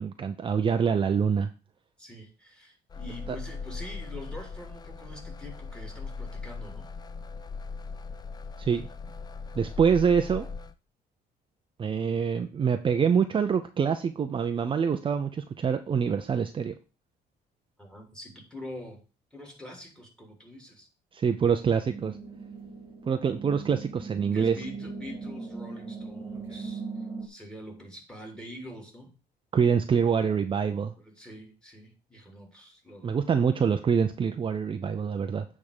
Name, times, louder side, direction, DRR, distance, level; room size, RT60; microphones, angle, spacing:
voice 1, 0.0-1.5 8.6-8.9 9.6-10.5 11.8-16.7 21.1-22.2 23.1-24.6 29.5-30.9 33.0-35.5, right 6 dB, 30° right, 7 dB, 0.6 m, -25 dB
voice 2, 2.0-6.9 17.8-19.0 19.3-20.9 24.3-29.1 31.0-33.2, equal, 5° left, 2 dB, 3.0 m, -45 dB
sound 1, 2.9-10.7, left 4 dB, 25° left, 0.6 m, -39 dB
sound 2, 21.9-27.3, right 4 dB, 15° right, 2.1 m, -39 dB
8.5 x 3.7 x 6.6 m, 0.33 s
cardioid pair, 110°, 17 cm